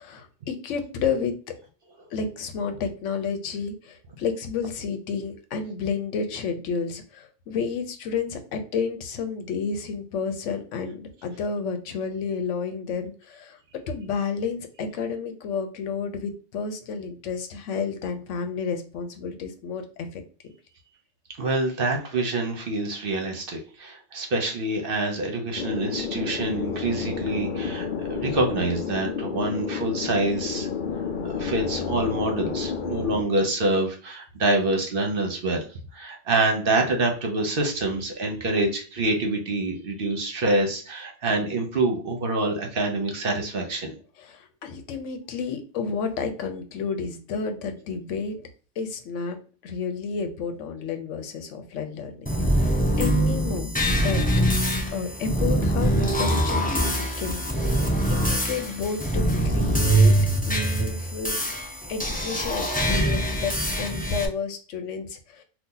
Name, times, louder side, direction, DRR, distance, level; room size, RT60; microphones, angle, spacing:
voice 1, 0.0-1.6 2.1-13.6 13.9-20.2 44.2-48.5 48.8-53.7 54.0-54.2 54.9-60.1 60.5-61.4 61.9-65.4, left 5 dB, 85° left, 6 dB, 1.0 m, -31 dB
voice 2, 21.4-30.7 31.2-35.7 35.9-44.0, right 2 dB, 55° right, 2 dB, 0.9 m, -26 dB
sound 1, 25.6-33.2, left 6 dB, 55° left, 0.6 m, -30 dB
sound 2, 52.3-64.3, right 1 dB, 15° left, 0.3 m, -23 dB
2.8 x 2.4 x 3.7 m, 0.39 s
omnidirectional pair, 1.2 m